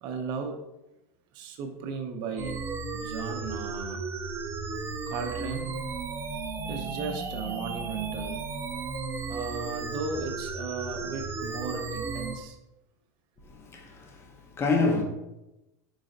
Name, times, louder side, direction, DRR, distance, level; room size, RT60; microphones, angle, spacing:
voice 1, 0.0-0.6 1.3-2.6 2.9-4.0 5.1-5.8 6.6-8.4 9.3-12.6, right 4 dB, 55° right, 0.8 m, -36 dB
sound 1, 2.4-12.4, right 4 dB, 25° right, 0.5 m, -34 dB
voice 2, 13.5-15.0, left 3 dB, 25° left, 0.9 m, -28 dB
4.0 x 3.8 x 2.6 m
hypercardioid pair, 105°, 10 cm